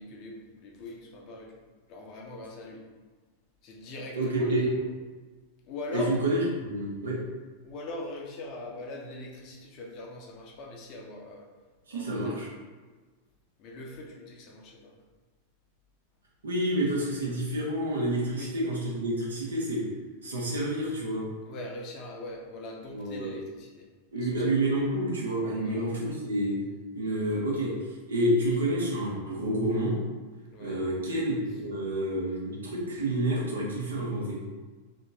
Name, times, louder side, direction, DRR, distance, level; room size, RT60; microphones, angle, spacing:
voice 1, 0.0-1.6 1.9-2.8 3.6-4.7 5.6-6.2 7.6-11.5 11.9-12.4 13.6-15.0 18.4-18.5 21.5-23.9 24.1-24.5 25.6-25.9 30.5-30.8, left 2 dB, 40° left, -1 dB, 0.7 m, -41 dB
voice 2, 4.2-4.7 5.9-7.2 11.9-12.5 16.4-19.8 20.2-21.2 22.9-23.3 24.1-26.6 26.9-27.7 28.1-29.9 30.6-34.4, right 1 dB, 70° right, -4 dB, 1.0 m, -29 dB
2.9 x 2.8 x 3.6 m, 1.3 s
figure-of-eight pair, 90°, 0 cm